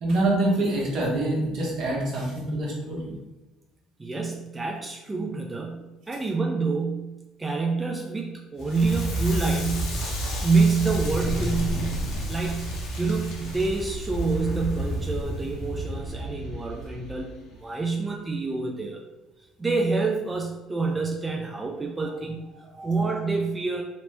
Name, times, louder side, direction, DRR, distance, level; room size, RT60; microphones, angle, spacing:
voice 1, 0.0-3.1, right 1 dB, 65° right, -3 dB, 0.9 m, -25 dB
voice 2, 4.0-7.1 7.4-10.0 10.4-12.0 12.3-19.0 19.6-23.8, right 4 dB, 20° right, 0 dB, 0.4 m, -27 dB
Crackle, 8.6-17.6, equal, 70° left, 0.7 m, -31 dB
3.0 x 2.0 x 3.1 m, 1.1 s
hypercardioid pair, 65°, 0 cm